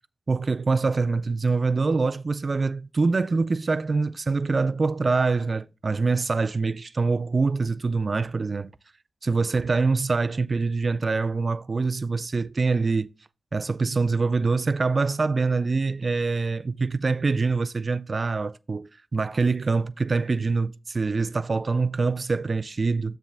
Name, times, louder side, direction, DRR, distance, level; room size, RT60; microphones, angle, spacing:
voice 1, 0.3-8.7 9.2-13.1 13.5-23.2, right 4 dB, 55° right, 0.3 m, -25 dB
7.2 x 3.4 x 5.8 m
cardioid pair, 40°, 0 cm